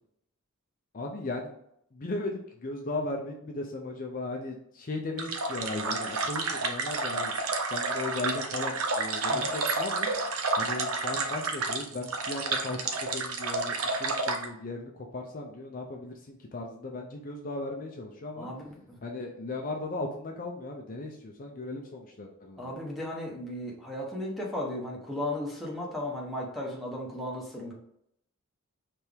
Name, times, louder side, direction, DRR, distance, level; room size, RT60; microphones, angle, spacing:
voice 1, 0.9-1.6 1.9-7.3 7.7-10.1 10.6-18.5 19.0-22.8, left 2 dB, 40° left, 1 dB, 0.5 m, -37 dB
sound 1, 5.2-14.5, right 3 dB, 90° right, 0.7 m, -30 dB
voice 2, 18.4-19.0 22.6-27.7, left 1 dB, ahead, -3 dB, 1.1 m, -35 dB
4.5 x 3.4 x 3.4 m, 0.74 s
head